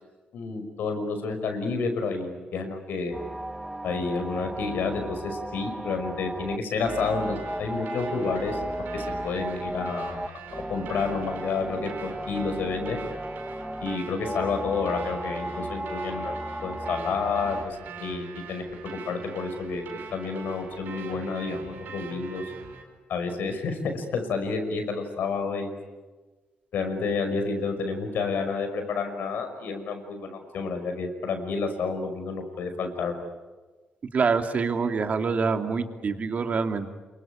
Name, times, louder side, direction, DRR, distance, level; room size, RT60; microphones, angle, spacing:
voice 1, 0.3-3.2 3.8-8.6 8.9-13.0 13.8-22.4 23.1-25.7 26.7-33.2, left 4 dB, 80° left, 7 dB, 5.6 m, -30 dB
sound 1, 3.1-17.7, right 1 dB, 10° right, 1.2 m, -35 dB
sound 2, 6.9-22.8, right 5 dB, 85° right, 4.7 m, -43 dB
voice 2, 34.1-36.9, right 5 dB, 50° right, 6 dB, 2.6 m, -25 dB
28.0 x 23.5 x 9.0 m, 1.3 s
cardioid pair, 85°, 3 cm